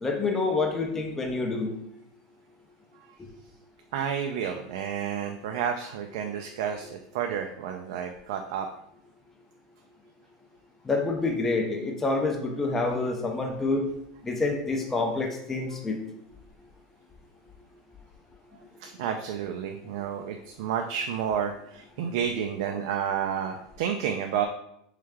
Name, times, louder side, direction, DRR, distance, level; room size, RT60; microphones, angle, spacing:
voice 1, 0.0-1.7 10.9-13.8 14.2-16.0, left 3 dB, 10° left, 2 dB, 0.5 m, -27 dB
voice 2, 3.9-8.7 15.7-15.8 18.8-24.5, right 8 dB, 65° right, 4 dB, 0.4 m, -31 dB
3.6 x 3.2 x 3.4 m, 0.76 s
supercardioid pair, 165°, 3 cm